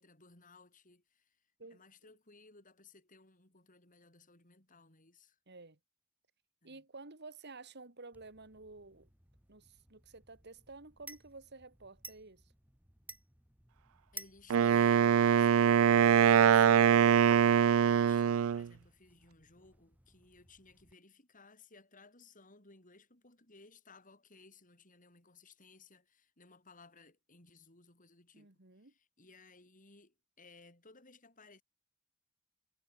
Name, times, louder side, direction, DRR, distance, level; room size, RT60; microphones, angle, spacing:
voice 1, 0.0-1.4 1.7-5.4 6.6-6.8 14.1-28.5 28.8-31.6, left 3 dB, 40° left, 7.1 m, -61 dB
voice 2, 5.5-5.8 6.6-9.1 9.5-12.5 28.3-28.9, right 3 dB, 55° right, 2.4 m, -52 dB
sound 1, 8.1-20.9, right 2 dB, 10° right, 2.3 m, -56 dB
Wind instrument woodwind instrument, 14.5-18.7, right 8 dB, 75° right, 0.4 m, -24 dB
head